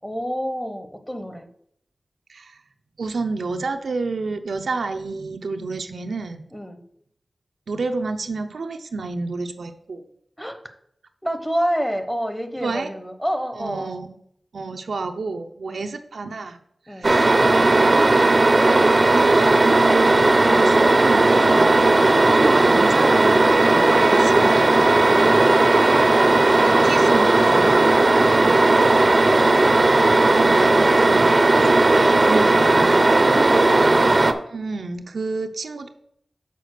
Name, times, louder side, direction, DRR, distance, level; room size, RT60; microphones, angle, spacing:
voice 1, 0.0-1.5 6.5-6.8 10.4-10.6 11.2-13.9 15.7-15.9 16.9-17.1 22.3-22.9 33.3-34.1, equal, 5° left, 8 dB, 0.8 m, -28 dB
voice 2, 2.3-2.6 3.0-6.4 7.7-10.0 12.6-12.9 13.6-14.2 14.5-16.6 16.9-18.2 19.0-22.1 22.5-24.7 26.6-28.1 30.2-33.1 34.5-35.9, right 3 dB, 85° right, 6 dB, 0.6 m, -30 dB
sound 1, 17.0-34.3, right 2 dB, 40° right, 0.6 m, -16 dB
6.8 x 4.2 x 6.5 m, 0.70 s
wide cardioid pair, 85°, 0 cm